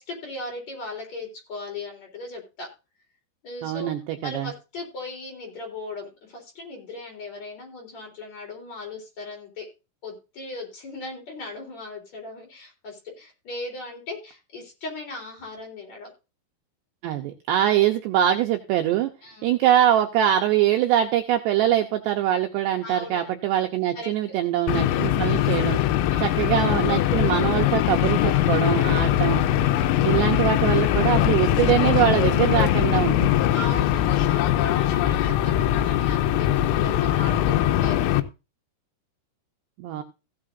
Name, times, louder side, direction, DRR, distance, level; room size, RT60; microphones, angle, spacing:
voice 1, 0.0-2.7 3.4-3.9 4.2-9.7 10.0-16.1 19.2-19.6 22.8-23.2 23.9-24.4 26.1-26.4 28.9-29.2 33.5-38.0, left 2 dB, 35° left, 1 dB, 4.5 m, -38 dB
voice 2, 3.6-4.5 17.0-19.1 19.4-25.8 26.2-29.4 30.0-33.4 39.8-40.0, right 11 dB, 85° right, 4 dB, 2.4 m, -23 dB
sound 1, 24.7-38.2, left 12 dB, 85° left, 3.4 m, -21 dB
16.0 x 9.7 x 2.6 m, 0.29 s
omnidirectional pair, 5.9 m